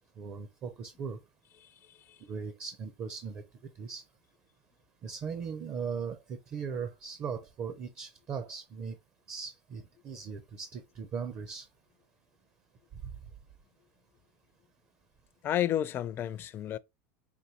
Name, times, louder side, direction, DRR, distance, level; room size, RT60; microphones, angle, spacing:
voice 1, 0.2-1.2 2.2-3.4 3.8-4.0 5.0-9.0 9.3-11.7, right 6 dB, 35° right, 0.6 m, -38 dB
voice 2, 1.6-2.2 15.4-16.8, left 11 dB, 35° left, 0.4 m, -32 dB
5.2 x 2.6 x 2.9 m
supercardioid pair, 130°, 7 cm